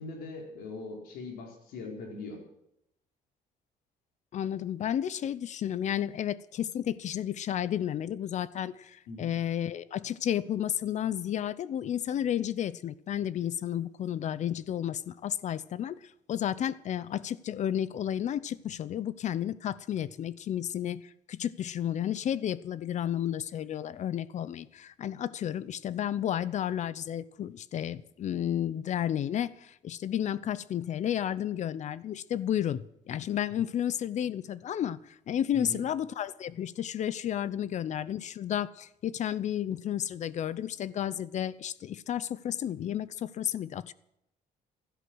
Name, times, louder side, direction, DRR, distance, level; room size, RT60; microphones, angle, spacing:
voice 1, 0.0-2.4 9.1-9.3 35.5-35.8, left 3 dB, 85° left, 4.5 m, -41 dB
voice 2, 4.3-16.0 16.3-21.0 21.3-43.9, left 10 dB, 50° left, 0.7 m, -32 dB
16.0 x 12.5 x 6.3 m
cardioid pair, 120°, 15 cm